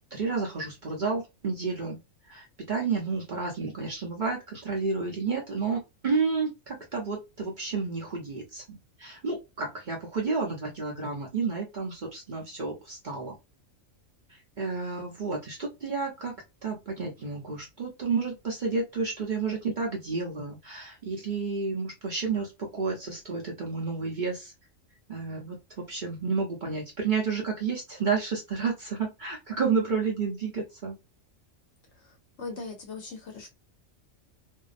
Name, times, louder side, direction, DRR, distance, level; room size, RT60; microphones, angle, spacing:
voice 1, 0.1-2.0 2.3-13.4 14.6-16.4 16.6-24.5 25.1-31.0, right 4 dB, 45° right, 0.8 m, -31 dB
voice 2, 32.4-33.5, left 4 dB, 60° left, 1.0 m, -39 dB
2.7 x 2.0 x 2.4 m
omnidirectional pair, 1.4 m